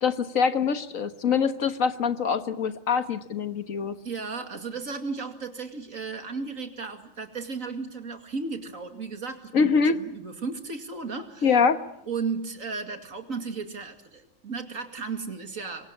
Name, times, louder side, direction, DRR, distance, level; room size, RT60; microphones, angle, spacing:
voice 1, 0.0-4.0 9.5-10.0 11.4-11.8, left 6 dB, 75° left, 10 dB, 1.8 m, -24 dB
voice 2, 4.0-11.6 12.1-15.9, right 4 dB, 80° right, 6 dB, 2.8 m, -35 dB
27.0 x 23.5 x 8.7 m, 0.74 s
omnidirectional pair, 1.4 m